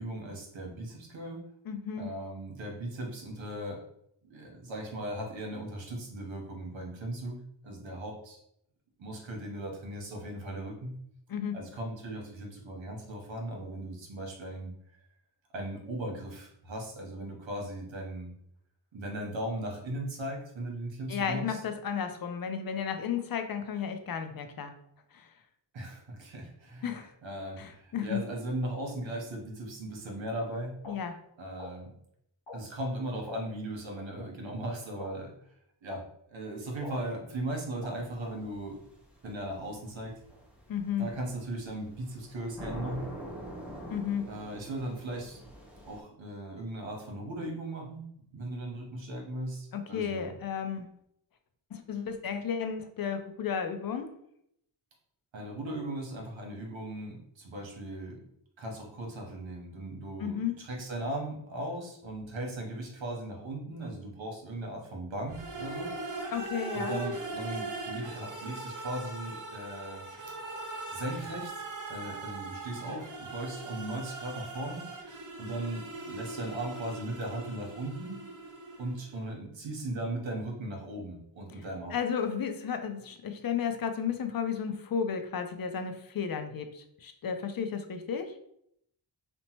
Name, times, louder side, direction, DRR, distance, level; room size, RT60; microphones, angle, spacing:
voice 1, 0.0-1.4 2.0-3.8 4.3-8.4 9.0-10.9 11.5-14.7 15.5-18.3 18.9-21.6 25.7-30.8 31.4-32.0 32.5-35.3 35.8-36.0 36.3-38.8 39.2-40.1 41.0-43.1 44.3-45.4 45.8-48.0 48.3-50.4 55.3-58.2 58.6-65.9 66.7-70.0 70.9-74.9 75.4-78.3 78.8-82.0, right 1 dB, 70° right, 0 dB, 0.8 m, -38 dB
voice 2, 1.7-2.1 11.3-11.6 21.1-24.7 25.1-25.3 26.8-27.1 27.6-28.2 30.9-31.2 40.7-41.1 43.9-44.2 49.7-50.9 51.7-54.1 60.2-60.6 66.3-67.0 81.9-88.3, left 7 dB, 50° left, 7 dB, 0.5 m, -33 dB
sound 1, 30.8-30.9 31.6-31.7 32.5-32.6 33.3-33.4 34.2-34.3 35.0-35.1 35.9-36.0 36.8-36.9 37.8-37.9, left 3 dB, 75° left, 0.9 m, -43 dB
sound 2, 38.0-46.0, equal, 5° right, 0.7 m, -46 dB
sound 3, 65.3-79.1, right 2 dB, 40° right, 0.7 m, -40 dB
2.9 x 2.1 x 2.8 m, 0.73 s
cardioid pair, 45°, 48 cm